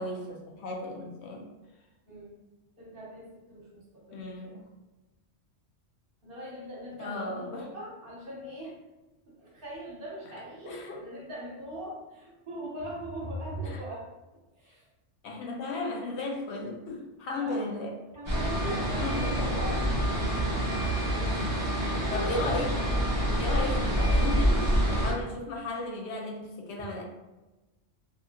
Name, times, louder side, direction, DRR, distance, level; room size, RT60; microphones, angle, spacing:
voice 1, 0.0-1.5 4.1-4.6 7.0-7.7 10.7-11.0 13.6-13.8 15.2-18.0 18.9-19.4 20.7-20.8 21.3-21.8 22.1-22.7 23.4-27.0, left 2 dB, 75° left, 0 dB, 0.8 m, -35 dB
voice 2, 2.8-4.6 6.2-8.8 9.3-14.1 14.6-14.9 17.4-17.6 18.1-20.3 21.6-22.8, right 1 dB, 55° right, -5 dB, 1.0 m, -40 dB
sound 1, 18.2-25.1, equal, 20° right, 0.8 m, -27 dB
2.7 x 2.6 x 2.5 m, 1.1 s
omnidirectional pair, 1.2 m